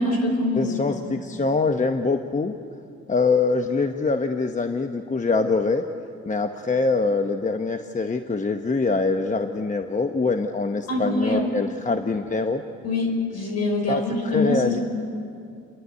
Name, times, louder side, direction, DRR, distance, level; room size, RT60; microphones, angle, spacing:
voice 1, 0.0-1.0 10.9-11.5 12.8-14.8, left 2 dB, 55° left, 3 dB, 5.4 m, -24 dB
voice 2, 0.6-2.5 3.1-5.9 6.3-12.6 13.9-14.8, left 4 dB, 25° left, 6 dB, 0.9 m, -24 dB
29.5 x 11.5 x 9.5 m, 2.4 s
cardioid pair, 90°, 30 cm